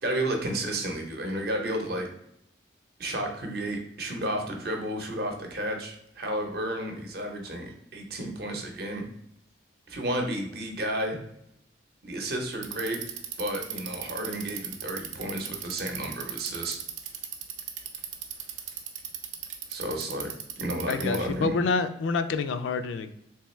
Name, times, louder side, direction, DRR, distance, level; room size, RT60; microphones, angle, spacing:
voice 1, 0.0-2.1 3.0-9.0 9.9-11.2 12.0-13.0 13.4-16.8 19.7-21.6, right 1 dB, 55° right, 2 dB, 0.7 m, -32 dB
Bicycle, 12.5-21.3, right 9 dB, 90° right, 0.5 m, -37 dB
voice 2, 20.9-23.1, left 4 dB, 80° left, 11 dB, 0.3 m, -27 dB
3.4 x 3.0 x 3.1 m, 0.75 s
head